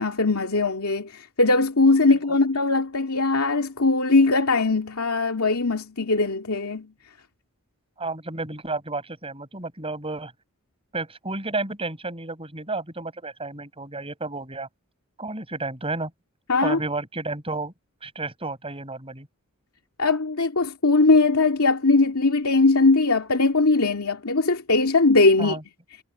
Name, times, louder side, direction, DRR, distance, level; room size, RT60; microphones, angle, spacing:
voice 1, 0.0-6.9 16.5-16.8 20.0-25.6, left 3 dB, 80° left, 2.5 m, -20 dB
voice 2, 8.0-10.3 10.9-14.7 15.2-16.1 16.6-17.7 18.0-19.3 25.4-25.6, right 3 dB, 25° right, 7.1 m, -31 dB
head